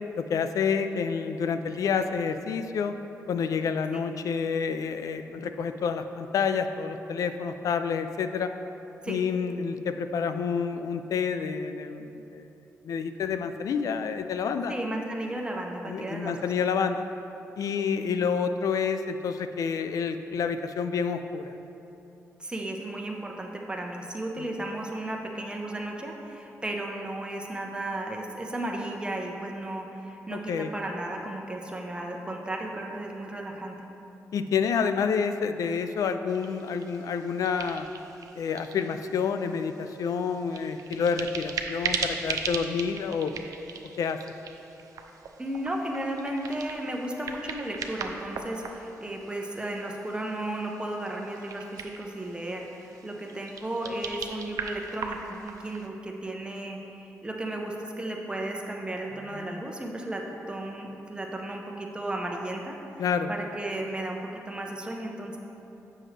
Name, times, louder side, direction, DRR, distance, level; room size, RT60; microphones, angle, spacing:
voice 1, 0.2-2.9 3.3-8.5 9.1-12.5 12.8-14.7 15.9-17.1 17.6-21.5 24.4-24.6 30.3-30.7 34.3-37.9 38.4-43.3 44.0-44.2 59.3-59.7 63.0-63.3, left 6 dB, 70° left, 9 dB, 0.4 m, -28 dB
voice 2, 14.7-16.5 22.4-33.8 45.4-65.4, right 1 dB, 15° right, 0 dB, 0.9 m, -34 dB
sound 1, 36.3-55.9, right 5 dB, 75° right, 0.5 m, -39 dB
7.6 x 6.2 x 3.3 m, 3.0 s
cardioid pair, 75°, 6 cm